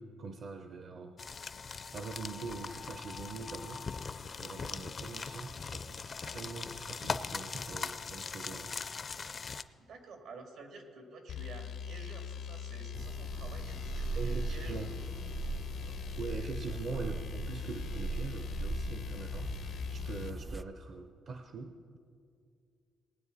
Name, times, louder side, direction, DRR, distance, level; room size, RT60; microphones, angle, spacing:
voice 1, 0.0-1.6 1.9-3.9 4.4-8.7 14.1-14.9 16.2-22.0, right 4 dB, 55° right, 6 dB, 0.7 m, -43 dB
sound 1, 1.2-9.6, left 5 dB, 40° left, 0.5 m, -40 dB
voice 2, 9.8-14.9 15.8-17.2, right 3 dB, 85° right, 3 dB, 2.1 m, -51 dB
sound 2, 11.3-20.4, left 8 dB, 75° left, 0.8 m, -42 dB
sound 3, 12.9-20.6, right 3 dB, 20° right, 0.4 m, -39 dB
19.5 x 9.3 x 4.1 m, 2.4 s
cardioid pair, 90°, 0 cm